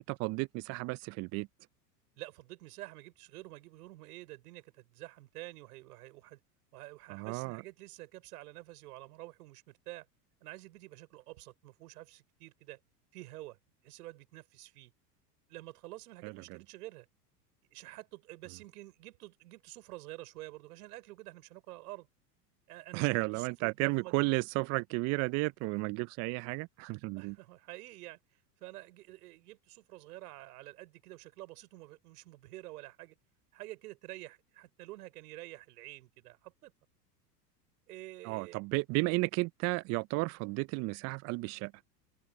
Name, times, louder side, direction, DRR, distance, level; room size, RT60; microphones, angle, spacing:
voice 1, 0.0-1.5 7.1-7.6 16.2-16.6 22.9-27.4 38.2-41.7, right 26 dB, 35° right, 0.4 m, -33 dB
voice 2, 2.2-6.4 6.7-10.1 10.4-12.8 13.1-13.6 13.8-14.9 15.5-17.1 17.7-22.1 22.7-24.3 27.2-33.2 33.5-36.7 37.9-38.6, right 18 dB, 65° right, 5.9 m, -49 dB
open air
hypercardioid pair, 90°, 49 cm